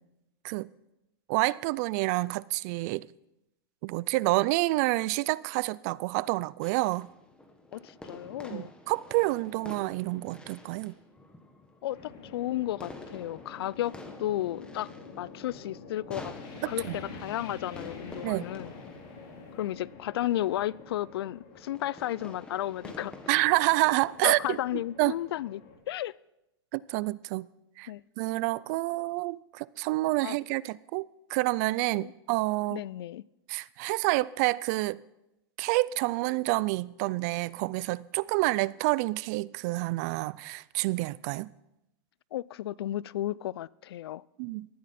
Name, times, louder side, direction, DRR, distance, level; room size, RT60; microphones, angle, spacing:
voice 1, 1.3-3.1 3.8-7.1 8.5-11.0 16.6-17.0 18.2-18.4 23.3-24.6 25.0-25.2 26.7-27.5 27.8-27.9 28.2-31.1 31.3-32.8 33.5-35.0 35.6-41.5 44.4-44.7, right 21 dB, 45° right, 0.4 m, -28 dB
sound 1, 6.6-24.5, left 2 dB, 5° left, 1.5 m, -50 dB
voice 2, 7.7-8.7 11.8-13.9 14.2-14.9 15.2-16.8 17.1-18.7 19.5-23.1 24.2-26.1 27.9-28.0 30.2-30.4 32.0-32.1 32.7-33.2 42.3-44.2, left 13 dB, 80° left, 0.4 m, -33 dB
sound 2, 11.9-25.8, left 4 dB, 40° left, 4.2 m, -47 dB
19.0 x 13.5 x 4.3 m
supercardioid pair, 145°, 13 cm